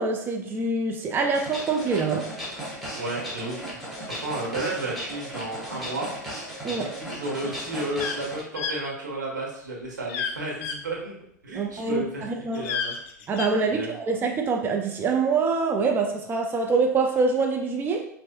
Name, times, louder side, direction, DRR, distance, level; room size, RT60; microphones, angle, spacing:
voice 1, 0.0-2.3 6.6-6.9 11.5-12.7 13.3-18.1, right 4 dB, 20° right, 3 dB, 0.4 m, -25 dB
sound 1, 1.3-8.4, equal, ahead, 1.4 m, -36 dB
voice 2, 2.9-3.7 4.1-6.1 6.7-11.2 11.4-12.3 12.5-13.0 13.7-13.9, right 2 dB, 80° right, -3 dB, 1.2 m, -32 dB
sound 2, 7.9-8.2 8.5-8.8 10.1-10.3 10.6-10.8 12.5-13.5, left 6 dB, 55° left, 0.5 m, -30 dB
5.3 x 2.6 x 2.3 m, 0.72 s
figure-of-eight pair, 90°, 10 cm